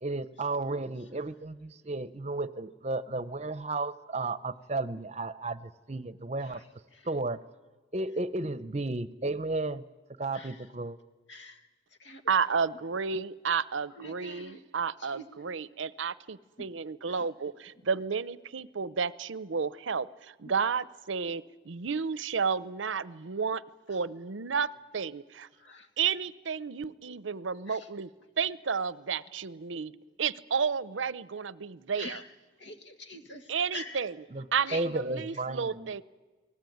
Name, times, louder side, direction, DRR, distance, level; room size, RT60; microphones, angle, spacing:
voice 1, 0.0-6.6 7.0-7.4 7.9-9.8 10.2-11.0 34.3-34.5 34.7-35.9, right 2 dB, 35° right, 16 dB, 0.7 m, -33 dB
voice 2, 10.3-10.6 11.3-11.7 12.0-12.2 14.0-14.6 15.0-15.3 16.6-16.7 17.1-17.3 25.7-25.9 27.7-27.9 32.0-32.3 32.6-34.0 34.7-34.8, left 2 dB, 75° left, 8 dB, 2.2 m, -45 dB
voice 3, 12.3-23.6 23.9-25.2 26.0-28.1 28.4-32.2 33.5-34.2 34.5-36.0, right 6 dB, 90° right, 18 dB, 0.7 m, -32 dB
28.5 x 19.0 x 9.4 m, 1.3 s
head